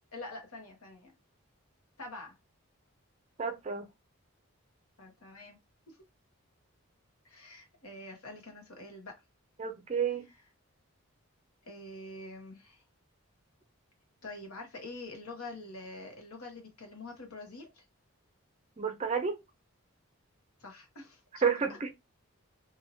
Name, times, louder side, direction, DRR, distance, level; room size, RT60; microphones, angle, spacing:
voice 1, 0.1-1.1 2.0-2.3 5.0-5.6 5.9-6.0 7.2-9.1 10.2-10.4 11.7-12.8 14.2-17.8 20.6-21.5, left 2 dB, 90° left, 1.2 m, -46 dB
voice 2, 3.4-3.8 9.6-10.3 18.8-19.4 21.4-21.9, right 6 dB, 30° right, 0.4 m, -30 dB
2.9 x 2.7 x 2.7 m
head